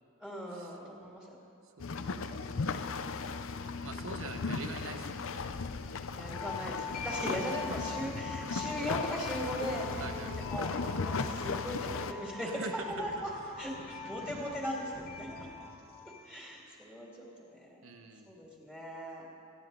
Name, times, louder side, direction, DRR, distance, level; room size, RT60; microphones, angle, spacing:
voice 1, 0.2-1.3 2.3-2.6 6.1-10.7 11.0-13.3 13.6-15.6 16.2-17.8 18.3-19.2, equal, 5° right, -4 dB, 2.2 m, -39 dB
sound 1, 1.8-12.1, left 4 dB, 65° left, 0.5 m, -36 dB
voice 2, 1.8-2.4 3.8-5.5 7.2-7.5 10.0-10.3 12.4-12.9 13.8-14.5 17.8-18.3, right 3 dB, 65° right, 6 dB, 1.1 m, -45 dB
sound 2, 6.3-16.4, left 4 dB, 45° left, 1.3 m, -44 dB
25.0 x 9.8 x 3.9 m, 2.7 s
head